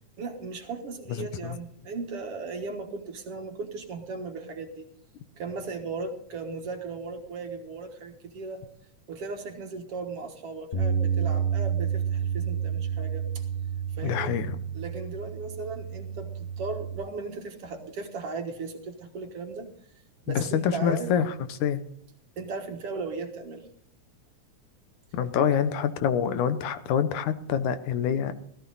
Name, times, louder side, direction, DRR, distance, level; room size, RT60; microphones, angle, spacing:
voice 1, 0.2-4.9 5.4-8.6 9.1-13.4 14.0-14.4 14.7-19.7 20.3-21.2 22.4-23.7 25.4-25.6, right 4 dB, 55° right, 4 dB, 2.2 m, -37 dB
voice 2, 1.2-1.6 14.0-14.6 20.4-21.3 21.6-21.8 25.1-28.3, left 8 dB, 85° left, 11 dB, 2.4 m, -26 dB
Bass guitar, 10.7-17.0, right 7 dB, 20° left, 1.5 m, -30 dB
17.0 x 13.5 x 4.1 m, 0.67 s
omnidirectional pair, 3.4 m